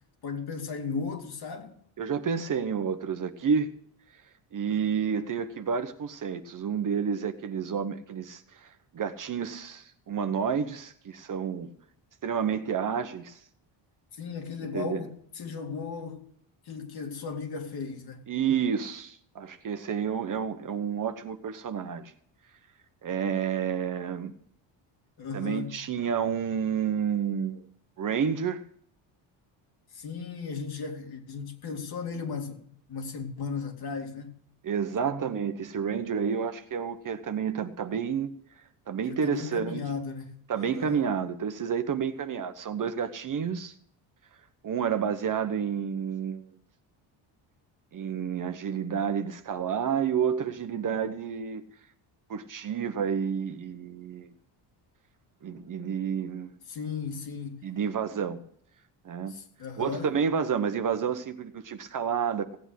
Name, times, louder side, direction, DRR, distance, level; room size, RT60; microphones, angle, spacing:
voice 1, 0.2-1.7 14.1-16.2 16.7-18.3 25.2-25.8 29.9-34.3 39.0-41.0 56.7-57.7 59.3-60.1, left 5 dB, 50° left, 2.6 m, -36 dB
voice 2, 2.0-3.7 4.5-8.7 8.9-11.7 12.2-13.4 14.7-15.0 18.3-22.1 23.0-24.3 25.3-27.6 28.0-28.6 34.6-38.3 38.9-39.8 40.5-43.7 44.6-46.5 47.9-51.6 52.3-54.3 55.4-56.5 57.6-58.4 59.0-59.3 59.8-62.6, right 7 dB, 40° right, 1.1 m, -30 dB
17.0 x 8.1 x 6.3 m
cardioid pair, 120°, 47 cm